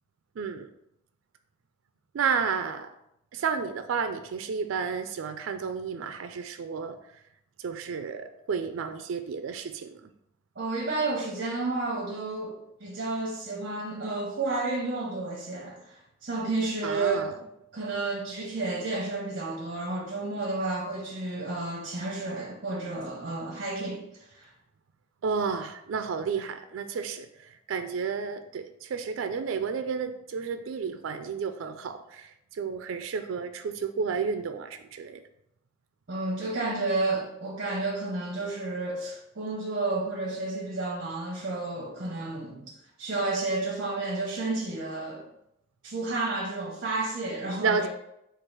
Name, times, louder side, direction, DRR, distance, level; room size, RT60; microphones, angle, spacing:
voice 1, 0.4-0.7 2.1-2.9 3.3-7.0 7.6-10.1 16.8-17.3 25.2-27.3 27.7-35.2 47.6-47.9, right 5 dB, 90° right, 9 dB, 0.4 m, -31 dB
voice 2, 10.6-15.9 16.2-17.3 17.7-24.0 36.1-42.7 43.0-45.3 45.8-47.9, right 2 dB, 55° right, -4 dB, 1.0 m, -31 dB
4.6 x 2.4 x 4.6 m, 0.80 s
head